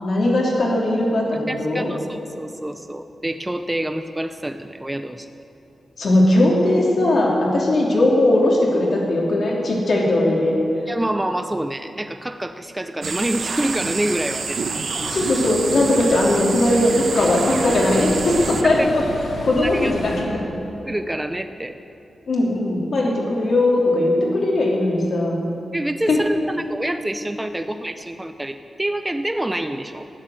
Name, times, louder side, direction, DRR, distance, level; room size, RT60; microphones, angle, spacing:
voice 1, 0.0-1.9 6.0-10.6 15.1-19.0 19.4-20.3 22.3-25.4 26.1-26.2, left 1 dB, 60° left, -3 dB, 3.0 m, -19 dB
voice 2, 1.5-5.3 10.9-14.6 18.6-18.7 19.6-20.1 20.8-21.8 25.7-30.1, right 1 dB, 10° right, 8 dB, 0.5 m, -27 dB
sound 1, 13.0-18.6, right 5 dB, 65° right, 1.0 m, -28 dB
Ocean, 15.0-20.2, left 2 dB, 85° left, 2.6 m, -33 dB
13.5 x 9.5 x 7.9 m, 2.8 s
wide cardioid pair, 135°, 0 cm